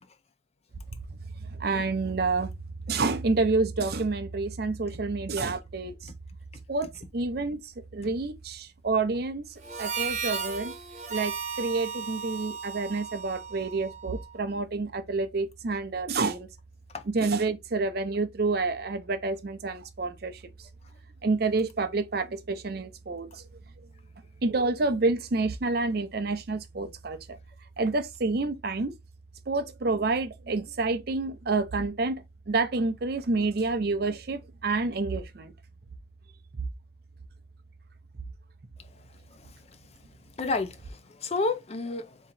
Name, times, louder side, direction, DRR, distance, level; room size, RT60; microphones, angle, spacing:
voice 1, 1.5-2.5 2.9-6.1 6.7-9.5 9.8-10.7 11.1-16.5 17.1-20.4 21.2-23.4 24.4-27.4 27.8-29.0 29.5-35.5 36.6-36.7, right 3 dB, 55° right, 0.6 m, -28 dB
Harmonica, 9.6-14.2, right 6 dB, 35° right, 1.2 m, -35 dB
voice 2, 40.4-42.2, left 3 dB, 35° left, 0.5 m, -31 dB
3.7 x 3.0 x 4.2 m
head